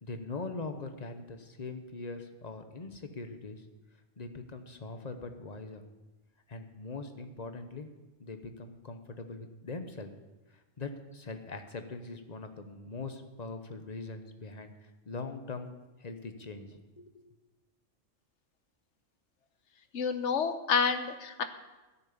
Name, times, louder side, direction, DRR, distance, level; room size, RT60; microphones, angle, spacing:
voice 1, 0.0-3.6 4.2-5.8 6.5-7.9 8.2-10.1 10.5-15.7 16.0-17.3, left 3 dB, 35° left, 7 dB, 1.0 m, -42 dB
voice 2, 19.9-21.4, left 6 dB, 75° left, 9 dB, 1.2 m, -29 dB
12.5 x 6.9 x 8.5 m, 1.1 s
omnidirectional pair, 1.2 m